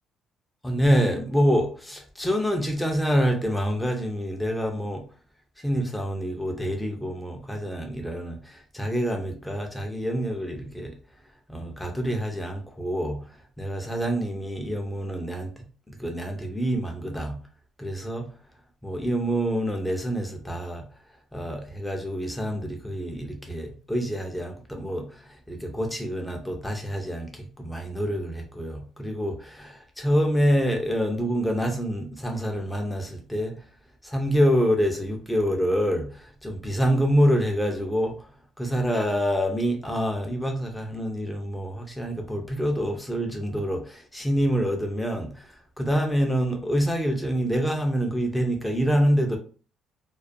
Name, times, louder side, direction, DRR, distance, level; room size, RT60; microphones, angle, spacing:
voice 1, 0.6-5.0 5.6-11.0 11.5-17.4 17.8-18.3 18.8-20.9 21.3-33.6 34.0-38.3 38.6-49.4, equal, 5° left, 0.4 m, -26 dB
2.3 x 2.1 x 2.5 m
cardioid pair, 120°, 0 cm